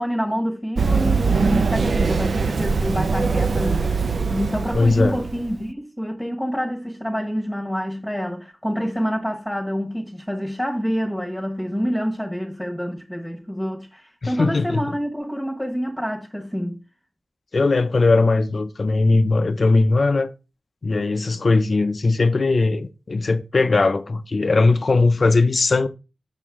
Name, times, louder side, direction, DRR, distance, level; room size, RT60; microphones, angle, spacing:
voice 1, 0.0-3.9 4.3-16.8, equal, 5° left, 1.1 m, -27 dB
Run, 0.8-5.5, right 4 dB, 75° right, 0.4 m, -22 dB
voice 2, 4.7-5.2 14.2-14.8 17.5-20.3 20.8-25.9, left 3 dB, 60° left, 0.4 m, -19 dB
6.7 x 6.2 x 3.5 m
wide cardioid pair, 70°, 0 cm